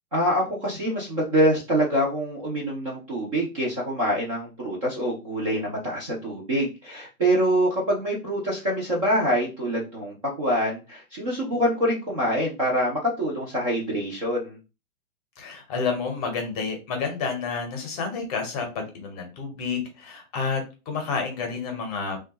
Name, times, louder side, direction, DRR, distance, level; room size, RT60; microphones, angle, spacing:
voice 1, 0.1-14.6, equal, 25° right, -4 dB, 0.4 m, -25 dB
voice 2, 15.4-22.2, left 5 dB, 25° left, 4 dB, 0.7 m, -30 dB
3.0 x 2.3 x 2.7 m, 0.30 s
hypercardioid pair, 150°, 44 cm